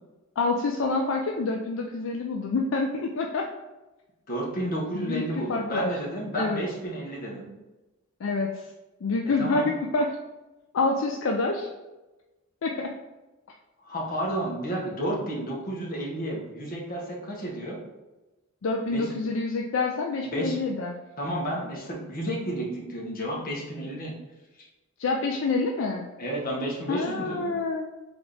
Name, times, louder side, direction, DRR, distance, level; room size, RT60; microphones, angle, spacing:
voice 1, 0.4-3.5 4.9-5.9 6.3-6.6 8.2-8.5 9.0-10.1 10.7-11.7 12.6-12.9 18.6-21.0 25.0-26.0 26.9-27.8, left 3 dB, 65° left, 1 dB, 0.4 m, -27 dB
voice 2, 4.3-7.5 9.4-9.7 13.8-17.8 18.9-19.1 20.3-20.6 21.2-24.1 26.2-27.5, right 1 dB, 45° left, -2 dB, 1.2 m, -31 dB
3.7 x 3.5 x 3.8 m, 1.1 s
head